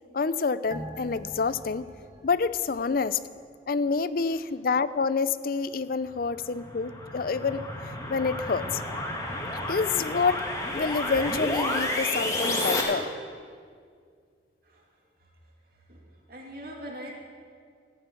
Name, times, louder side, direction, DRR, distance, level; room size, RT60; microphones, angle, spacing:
voice 1, 0.1-1.9 2.2-3.2 3.7-7.6 8.1-8.8 9.5-10.4 10.7-13.1, left 5 dB, 50° left, 16 dB, 0.4 m, -27 dB
sound 1, 0.7-3.6 4.0-4.1, right 1 dB, 20° right, 1.2 m, -44 dB
sound 2, 6.3-12.8, left 1 dB, 15° left, 1.9 m, -31 dB
voice 2, 15.7-17.1, equal, 50° right, -1 dB, 2.6 m, -43 dB
14.5 x 9.2 x 8.4 m, 2.1 s
head